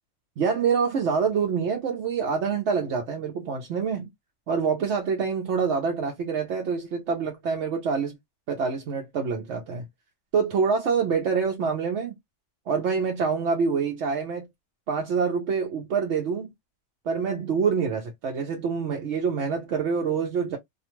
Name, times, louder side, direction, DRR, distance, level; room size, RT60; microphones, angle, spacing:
voice 1, 0.4-4.1 4.5-8.2 8.5-9.8 10.3-12.1 12.7-14.5 14.9-16.5 17.1-20.6, right 5 dB, 75° right, 0.9 m, -26 dB
2.4 x 2.3 x 2.8 m
omnidirectional pair, 1.2 m